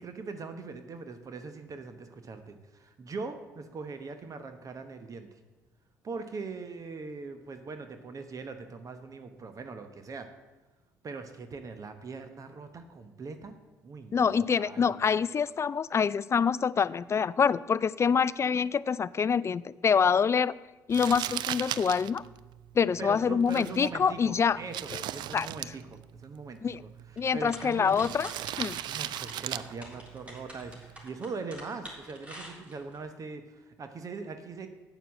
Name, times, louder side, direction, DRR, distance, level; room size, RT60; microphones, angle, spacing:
voice 1, 0.0-5.4 6.0-10.3 11.0-13.5 13.8-15.0 23.0-28.0 28.9-34.7, right 4 dB, 40° right, 8 dB, 1.0 m, -41 dB
voice 2, 14.1-20.5 20.9-22.2 22.8-24.6 24.9-25.0 25.3-25.5 26.6-26.8 27.2-28.3 28.6-28.8, left 6 dB, 35° left, 19 dB, 0.3 m, -26 dB
Crumpling crinkling, 20.9-31.1, right 12 dB, 60° right, 0.4 m, -39 dB
sound 1, 27.2-33.0, equal, 15° right, 3.5 m, -47 dB
8.0 x 6.8 x 7.5 m, 1.1 s
hypercardioid pair, 60°, 8 cm